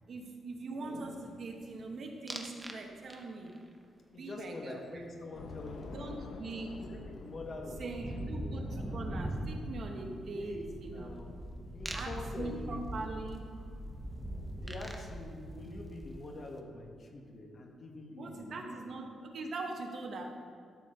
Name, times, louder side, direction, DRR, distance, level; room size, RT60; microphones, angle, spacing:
voice 1, 0.1-3.5 4.1-5.0 5.9-6.8 7.8-11.1 11.9-13.6 18.2-20.3, right 3 dB, 50° right, 2 dB, 1.1 m, -42 dB
sound 1, 2.3-2.8 3.1-3.6 6.0-6.1 6.3-16.4, right 1 dB, 5° right, 0.8 m, -41 dB
voice 2, 4.1-6.0 6.7-8.6 10.3-10.7 10.9-11.4 11.6-12.9 14.6-18.7, left 2 dB, 40° left, 1 dB, 1.3 m, -45 dB
Train / Subway metro underground, 5.3-14.8, left 3 dB, 75° left, 0.7 m, -50 dB
12.5 x 4.5 x 6.5 m, 2.2 s
wide cardioid pair, 145°, 0 cm